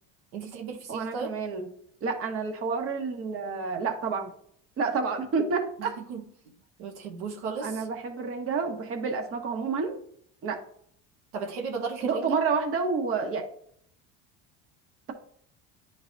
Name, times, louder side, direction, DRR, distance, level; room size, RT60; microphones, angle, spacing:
voice 1, 0.3-1.3 5.8-6.2 6.8-7.9 11.3-12.4, right 5 dB, 90° right, 2 dB, 1.2 m, -35 dB
voice 2, 0.9-1.7 2.0-4.3 4.8-6.0 7.6-9.9 10.4-10.6 12.0-13.4, right 4 dB, 45° right, 4 dB, 1.4 m, -29 dB
10.5 x 4.0 x 2.6 m, 0.63 s
supercardioid pair, 115°, 31 cm